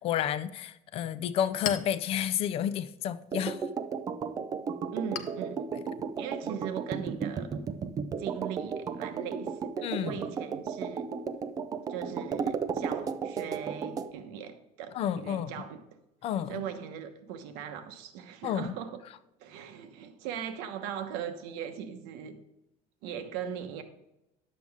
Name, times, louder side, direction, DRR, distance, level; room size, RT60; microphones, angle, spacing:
voice 1, 0.0-3.6 9.8-10.2 14.9-15.5 16.2-16.6 18.4-18.7, left 10 dB, 40° left, 0.5 m, -31 dB
Chink clink, 1.1-8.2, left 8 dB, 75° left, 1.0 m, -45 dB
sound 1, 3.3-14.1, right 6 dB, 25° right, 0.4 m, -34 dB
voice 2, 4.9-5.7 6.2-7.6 8.2-11.1 11.9-15.8 16.5-19.0 19.4-22.4 23.0-23.8, right 8 dB, 80° right, 1.2 m, -39 dB
10.5 x 7.7 x 3.5 m
cardioid pair, 175°, 15 cm